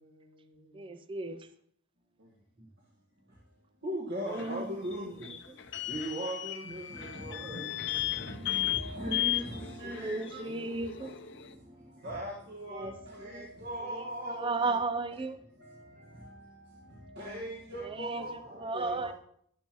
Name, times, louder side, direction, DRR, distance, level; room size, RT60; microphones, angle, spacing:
voice 1, 0.0-0.9 2.2-2.5 5.8-5.9 7.0-8.8 10.4-10.7 17.1-19.1, right 1 dB, 65° right, 2.2 m, -55 dB
voice 2, 0.7-1.5 4.2-4.8 9.8-11.2 12.7-13.5 14.3-15.4 17.8-19.1, right 3 dB, 25° right, 0.5 m, -35 dB
voice 3, 3.8-5.3 5.8-7.6 8.1-10.5 11.0-14.7 15.6-19.1, right 1 dB, 50° right, 1.7 m, -40 dB
sound 1, 4.3-11.5, left 14 dB, 55° left, 0.8 m, -36 dB
12.5 x 11.5 x 3.1 m
head